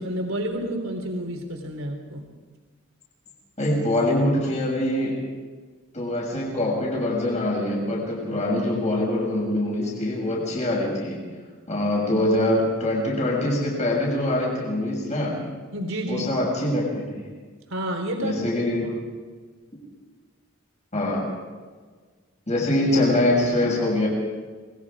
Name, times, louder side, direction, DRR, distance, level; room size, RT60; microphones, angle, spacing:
voice 1, 0.0-2.2 15.7-16.3 17.7-18.4 18.8-18.9, right 1 dB, 75° right, 2 dB, 3.8 m, -29 dB
voice 2, 3.6-5.2 5.9-11.3 11.7-15.4 16.1-17.3 18.2-18.9 20.9-21.3 22.5-24.1, left 1 dB, 35° left, -3 dB, 6.6 m, -24 dB
28.0 x 21.0 x 5.0 m, 1.5 s
head